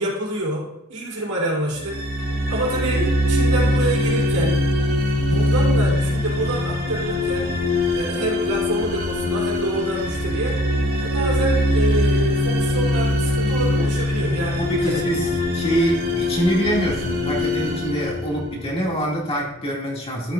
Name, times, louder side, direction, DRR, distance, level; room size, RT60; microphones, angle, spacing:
voice 1, 0.0-2.0 2.5-4.6 5.2-7.6 7.9-10.6 11.0-15.1, right 1 dB, 75° right, -3 dB, 3.8 m, -27 dB
sound 1, 1.8-18.9, left 1 dB, 45° right, 2.1 m, -22 dB
voice 2, 14.6-20.3, right 1 dB, 25° left, -3 dB, 2.5 m, -25 dB
13.0 x 8.4 x 2.6 m, 0.93 s
head